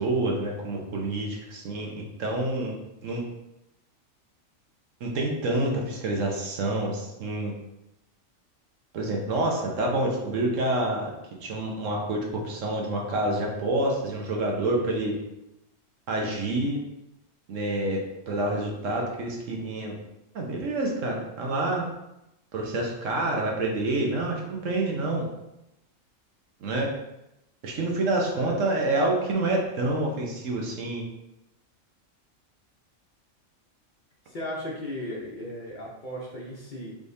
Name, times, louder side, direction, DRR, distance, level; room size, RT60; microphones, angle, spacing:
voice 1, 0.0-2.7 3.0-3.2 5.0-7.5 8.9-11.1 11.4-15.1 16.1-16.8 17.5-20.0 20.3-21.9 22.5-25.3 26.6-26.9 27.6-31.0, right 2 dB, 70° right, 0 dB, 1.2 m, -27 dB
voice 2, 34.3-37.0, left 1 dB, 40° left, -4 dB, 0.9 m, -36 dB
4.9 x 3.4 x 2.7 m, 0.90 s
omnidirectional pair, 1.4 m